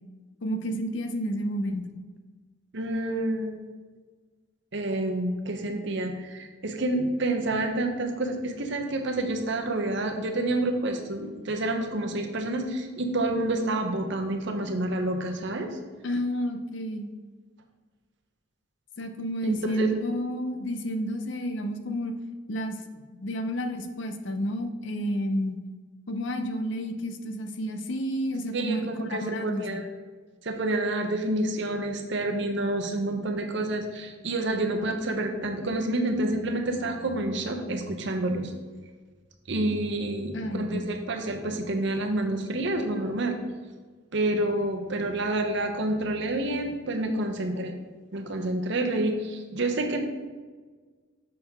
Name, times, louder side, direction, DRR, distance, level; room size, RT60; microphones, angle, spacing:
voice 1, 0.4-2.0 16.0-17.1 19.0-22.1 22.5-25.6 26.1-29.8 40.3-40.9, equal, 60° left, 7 dB, 0.7 m, -30 dB
voice 2, 2.7-3.6 4.7-15.7 19.4-19.9 28.5-29.9 30.4-38.5 39.5-43.4 44.1-47.7 48.1-50.0, right 1 dB, 60° right, 4 dB, 0.9 m, -28 dB
6.7 x 6.4 x 3.6 m, 1.4 s
head